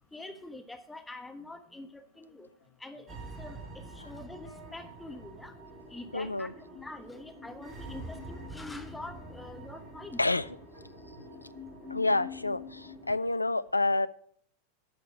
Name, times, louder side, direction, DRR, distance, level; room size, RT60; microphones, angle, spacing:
voice 1, 0.1-2.5 2.8-5.5 5.9-6.5 6.8-10.2, left 2 dB, 5° left, 7 dB, 0.9 m, -45 dB
sound 1, 1.3-11.9 12.1-13.5, left 1 dB, 60° left, 3.3 m, -61 dB
sound 2, 3.1-13.1, equal, 25° right, 2.6 m, -46 dB
voice 2, 6.1-6.5 10.2-10.5 10.8-11.5 11.9-14.1, left 2 dB, 85° left, 16 dB, 0.4 m, -29 dB
10.0 x 6.6 x 6.0 m, 0.64 s
figure-of-eight pair, 90°, 0 cm